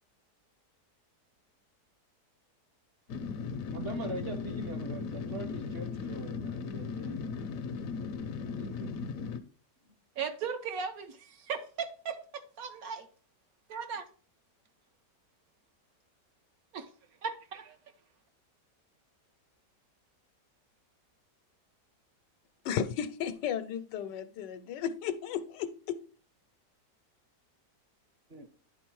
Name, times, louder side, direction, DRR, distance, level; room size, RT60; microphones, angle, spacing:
sound 1, 3.1-9.4, left 5 dB, 65° left, 0.9 m, -37 dB
voice 1, 3.7-7.2 8.3-9.0 28.3-28.5, right 1 dB, 40° right, 1.0 m, -42 dB
voice 2, 10.2-13.1 13.7-14.0 16.7-16.9 17.2-17.8, right 6 dB, 65° right, 1.1 m, -37 dB
voice 3, 22.6-26.0, left 8 dB, 85° left, 1.3 m, -34 dB
10.0 x 3.8 x 4.6 m
omnidirectional pair, 1.8 m